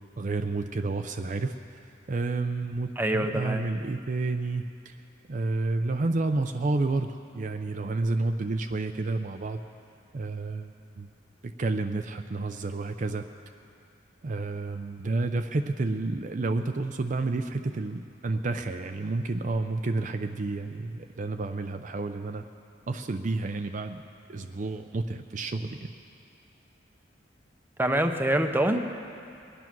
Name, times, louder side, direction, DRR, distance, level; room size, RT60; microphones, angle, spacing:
voice 1, 0.2-1.5 2.1-5.0 5.3-9.6 10.1-11.1 11.4-13.2 14.2-22.4 22.9-24.0 24.3-25.9, right 3 dB, 40° right, 6 dB, 0.5 m, -30 dB
voice 2, 3.0-3.7 27.8-28.8, right 1 dB, 10° right, 5 dB, 0.7 m, -25 dB
22.0 x 9.4 x 6.1 m, 2.5 s
head